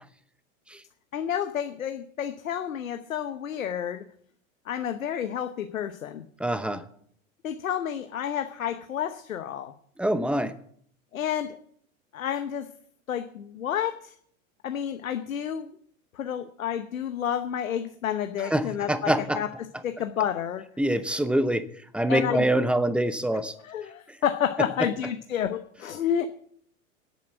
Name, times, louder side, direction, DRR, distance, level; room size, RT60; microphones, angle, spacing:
voice 1, 1.1-4.0 4.7-6.3 7.4-9.7 11.1-11.6 12.1-12.7 13.1-14.1 14.6-15.8 16.1-19.5 19.8-20.6 22.1-22.5 23.6-26.3, left 9 dB, 80° left, 9 dB, 1.0 m, -30 dB
voice 2, 6.4-6.8 10.0-10.5 18.4-19.4 20.8-21.7 21.9-23.5 24.1-24.2, right 1 dB, 5° right, 13 dB, 0.8 m, -25 dB
10.5 x 8.5 x 8.0 m, 0.63 s
hypercardioid pair, 95°, 40 cm